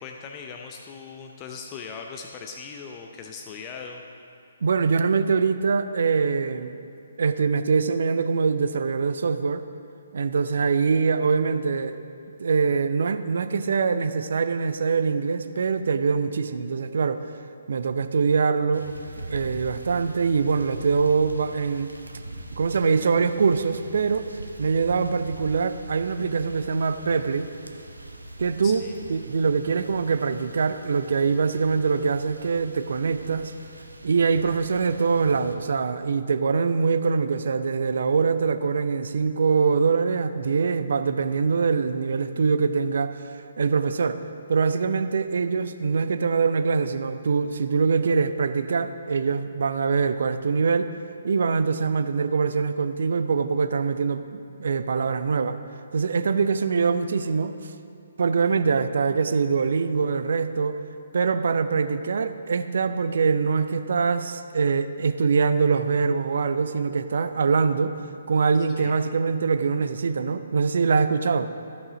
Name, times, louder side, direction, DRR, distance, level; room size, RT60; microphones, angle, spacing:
voice 1, 0.0-4.0 28.6-29.0 68.8-69.0, left 5 dB, 20° left, 2 dB, 0.5 m, -39 dB
voice 2, 4.6-6.7 7.2-9.6 10.1-12.0 12.4-17.2 17.7-18.9 19.3-21.9 22.6-24.2 24.6-27.5 28.4-28.8 29.1-33.5 34.0-44.2 44.5-50.9 51.2-55.6 55.9-57.7 58.2-60.8 61.1-68.0 68.3-71.5, right 5 dB, 55° right, 10 dB, 0.5 m, -23 dB
sound 1, 18.7-35.5, right 1 dB, 75° right, 0.8 m, -42 dB
14.5 x 5.5 x 3.9 m, 2.5 s
figure-of-eight pair, 135°, 0 cm